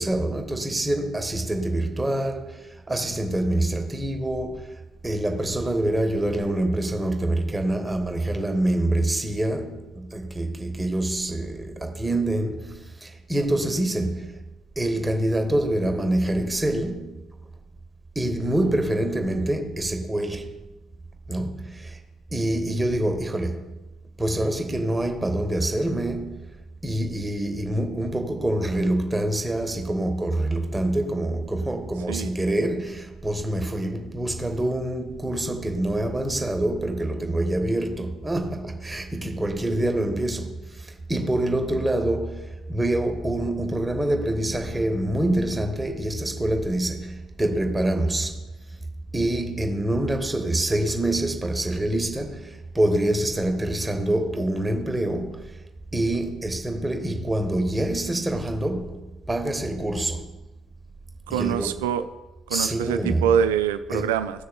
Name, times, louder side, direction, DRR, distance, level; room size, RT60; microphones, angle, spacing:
voice 1, 0.0-14.4 14.8-17.2 18.1-20.5 21.3-22.0 22.3-23.7 24.2-26.5 26.8-48.4 49.1-55.6 55.9-60.4 61.3-61.8 62.5-63.3 63.9-64.1, right 1 dB, 15° right, 1.4 m, -26 dB
voice 2, 61.3-62.0 62.5-64.4, right 9 dB, 70° right, 0.4 m, -24 dB
16.5 x 6.5 x 2.3 m
figure-of-eight pair, 50°, 0 cm